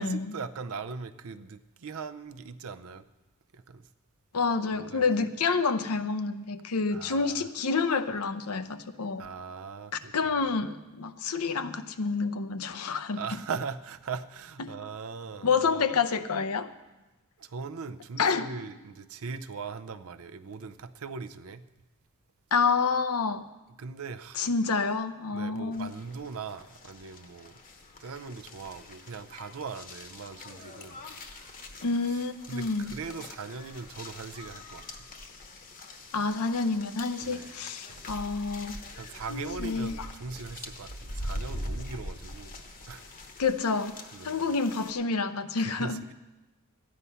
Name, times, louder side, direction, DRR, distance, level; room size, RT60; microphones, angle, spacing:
voice 1, 0.0-3.0 3.5-3.9 4.7-5.1 6.9-7.5 9.2-10.5 13.1-15.7 17.4-21.6 23.8-24.5 25.3-27.5 28.0-31.0 32.1-34.9 37.2-37.6 37.9-38.1 38.9-42.5 42.9-43.1 44.1-44.4 45.6-46.1, right 5 dB, 65° right, 12 dB, 0.6 m, -40 dB
voice 2, 4.3-9.2 10.1-13.2 14.6-14.7 15.4-16.7 18.2-18.5 22.5-23.4 24.4-25.9 31.8-32.9 36.1-38.7 39.3-40.1 43.4-43.9 44.2-46.0, left 4 dB, 80° left, 11 dB, 0.7 m, -28 dB
sound 1, 25.7-44.9, left 1 dB, 40° left, 1.0 m, -43 dB
13.5 x 9.7 x 5.6 m, 1.1 s
head